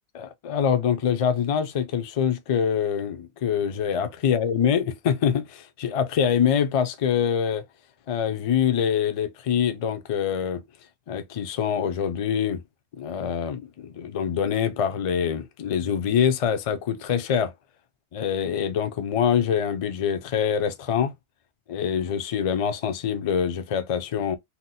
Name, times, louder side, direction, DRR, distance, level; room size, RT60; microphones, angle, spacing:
voice 1, 0.2-7.6 8.1-10.6 11.1-12.6 12.9-17.5 18.1-21.1 21.7-24.4, left 8 dB, 50° left, 0.4 m, -25 dB
2.8 x 2.0 x 4.0 m
omnidirectional pair, 1.1 m